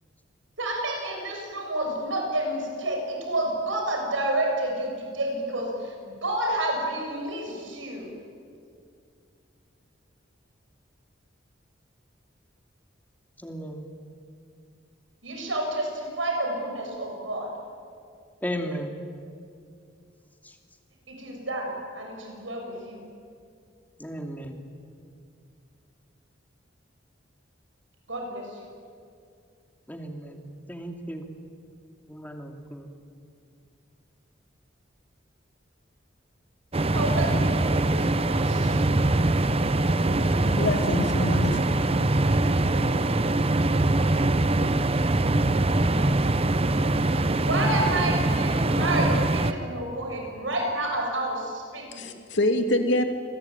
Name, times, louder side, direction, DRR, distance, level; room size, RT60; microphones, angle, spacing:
voice 1, 0.6-8.1 15.2-17.5 21.1-23.0 28.1-28.5 36.9-37.8 38.2-38.9 47.3-52.1, right 1 dB, 90° right, 1 dB, 7.3 m, -30 dB
voice 2, 13.4-13.9 18.4-19.0 20.4-20.5 24.0-24.6 29.9-30.4 30.7-31.3 32.1-32.9, equal, 10° left, 3 dB, 2.6 m, -35 dB
sound 1, 36.7-49.5, right 2 dB, 30° right, 0.9 m, -23 dB
voice 3, 40.5-41.9 51.9-53.0, left 1 dB, 65° left, 6 dB, 2.4 m, -26 dB
28.0 x 20.5 x 9.1 m, 2.3 s
head